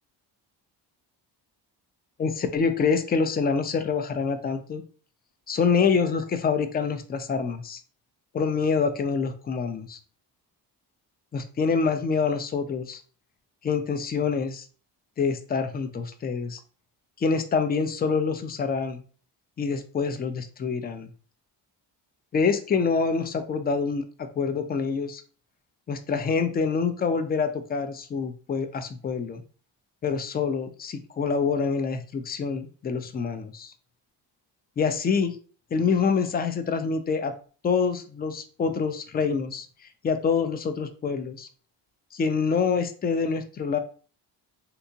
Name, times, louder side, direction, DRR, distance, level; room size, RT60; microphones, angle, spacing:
voice 1, 2.2-4.8 5.5-7.8 8.3-10.0 11.3-13.0 13.6-14.7 15.2-16.6 17.2-19.0 19.6-21.1 22.3-25.2 25.9-29.4 30.0-33.7 34.8-35.4 35.7-37.3 37.6-39.7 40.0-41.5 42.1-43.8, left 5 dB, 25° left, 9 dB, 0.3 m, -26 dB
3.3 x 2.9 x 2.6 m, 0.40 s
cardioid pair, 120°, 41 cm